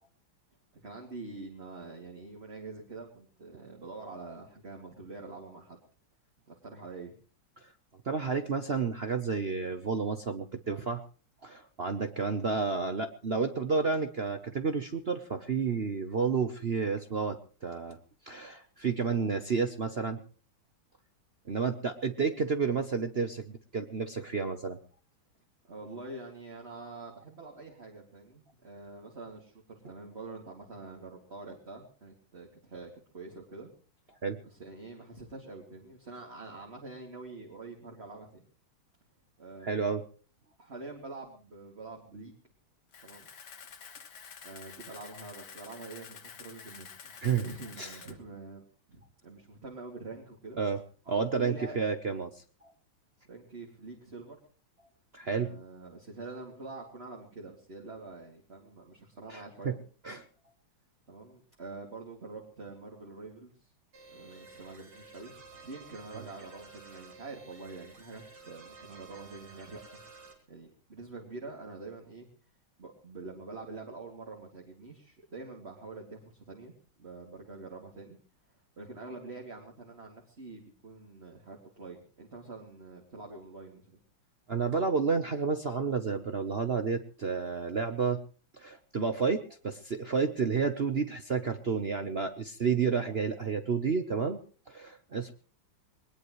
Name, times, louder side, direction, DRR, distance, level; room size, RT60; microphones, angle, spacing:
voice 1, 0.7-5.8 6.5-7.1 25.7-33.7 34.4-38.4 39.4-39.8 40.6-42.4 43.0-43.3 44.4-48.6 48.9-50.6 51.1-51.9 53.3-54.4 55.3-59.8 61.1-63.7 64.1-70.0 70.5-72.3 72.8-78.2 78.8-84.0, right 3 dB, 30° right, -1 dB, 2.7 m, -45 dB
voice 2, 8.1-11.0 11.4-17.4 17.6-18.0 18.3-20.2 21.5-24.8 34.2-34.4 39.6-40.0 47.2-47.4 47.8-47.9 50.6-50.8 51.1-52.3 55.1-55.5 59.3-59.7 60.0-60.2 84.5-88.2 88.6-94.4 94.7-95.3, right 5 dB, 55° right, 8 dB, 0.7 m, -30 dB
Camera, 42.9-48.1, left 6 dB, 55° left, 1.9 m, -49 dB
sound 1, 63.9-70.3, right 4 dB, 75° right, 4.4 m, -52 dB
21.0 x 20.0 x 3.2 m, 0.38 s
omnidirectional pair, 2.3 m